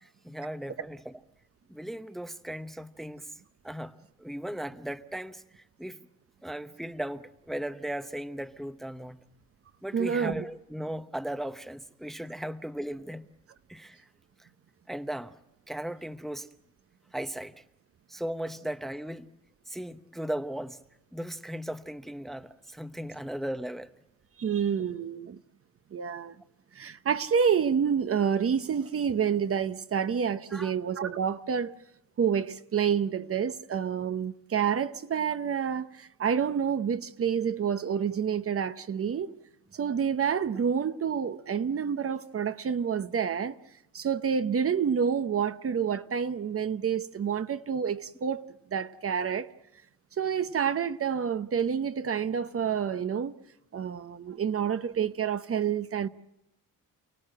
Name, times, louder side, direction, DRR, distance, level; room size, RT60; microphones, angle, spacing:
voice 1, 0.0-1.2 1.7-3.3 3.6-6.0 6.4-9.2 9.8-13.3 13.7-14.1 14.4-14.5 14.9-15.4 15.7-16.5 17.1-17.6 18.1-19.3 19.7-20.8 21.1-23.9 30.5-30.7, right 1 dB, ahead, 0.8 m, -37 dB
voice 2, 9.9-10.4 24.4-25.4 25.9-26.3 26.7-31.7 32.2-39.4 39.7-43.6 43.9-48.4 48.7-49.5 50.2-53.3 53.7-56.1, right 7 dB, 40° right, 0.8 m, -28 dB
29.0 x 18.5 x 7.8 m
cardioid pair, 150°, 35 cm